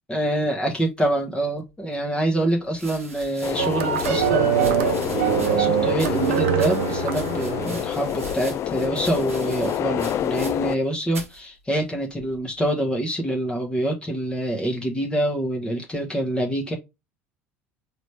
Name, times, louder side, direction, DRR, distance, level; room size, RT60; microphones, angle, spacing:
voice 1, 0.1-16.8, right 1 dB, 15° left, 1.3 m, -26 dB
sound 1, 1.7-1.8 2.7-10.8 11.1-11.4 12.2-12.6, right 3 dB, 90° right, 1.0 m, -41 dB
sound 2, 3.4-10.8, left 11 dB, 40° left, 0.4 m, -28 dB
sound 3, 3.6-8.0, right 11 dB, 70° right, 0.6 m, -23 dB
4.0 x 3.2 x 3.2 m
hypercardioid pair, 70°, 7 cm